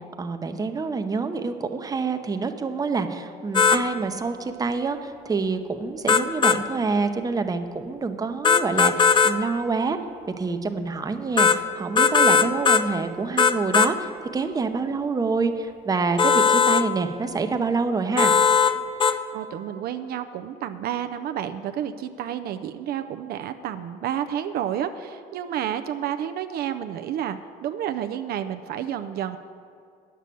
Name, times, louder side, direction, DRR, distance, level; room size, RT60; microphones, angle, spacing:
voice 1, 0.2-10.0 10.4-18.3, right 4 dB, 20° right, 7 dB, 0.7 m, -27 dB
sound 1, 3.5-3.8 6.1-6.6 8.4-9.4 11.4-11.6 12.0-12.9 13.4-13.9 16.2-16.8 18.2-18.7 19.0-19.2, left 6 dB, 30° left, 0.5 m, -18 dB
voice 2, 19.1-29.4, right 10 dB, 65° right, 9 dB, 0.5 m, -30 dB
9.9 x 6.8 x 7.6 m, 2.4 s
cardioid pair, 110°, 17 cm